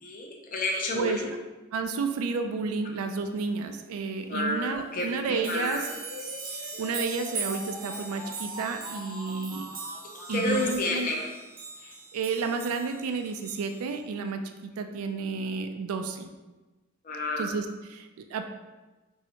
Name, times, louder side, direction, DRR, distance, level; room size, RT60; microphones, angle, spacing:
voice 1, 0.0-1.3 4.3-5.9 10.3-11.2 17.0-17.5, left 2 dB, 40° left, -1 dB, 0.5 m, -30 dB
voice 2, 1.7-5.8 6.8-9.7 10.3-11.1 11.8-16.3 17.4-18.5, right 4 dB, 90° right, 6 dB, 0.3 m, -31 dB
sound 1, 4.6-4.7 5.0-14.0, right 4 dB, 45° right, 0.6 m, -41 dB
sound 2, 5.7-10.7, left 2 dB, 75° left, 0.9 m, -43 dB
3.2 x 2.7 x 2.9 m, 1.2 s
head